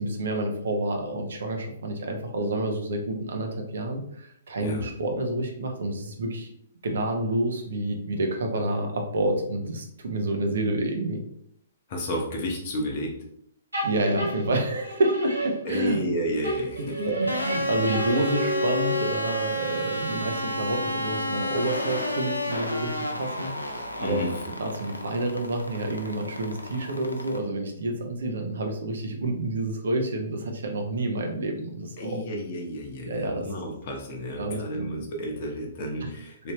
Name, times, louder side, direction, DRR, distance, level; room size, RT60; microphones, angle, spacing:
voice 1, 0.0-6.5 6.8-11.2 13.8-16.0 17.0-24.2 24.6-32.2 33.0-33.5 34.4-34.9 36.0-36.1, right 1 dB, 60° right, 3 dB, 0.7 m, -29 dB
voice 2, 11.9-13.1 15.6-17.0 24.0-24.3 32.0-36.5, equal, 45° left, 1 dB, 0.8 m, -31 dB
sound 1, 13.7-16.1 16.4-19.3, equal, 85° right, 1.3 m, -32 dB
sound 2, 17.3-27.4, equal, 85° left, 0.5 m, -31 dB
3.3 x 2.7 x 3.1 m, 0.72 s
figure-of-eight pair, 120°, 0 cm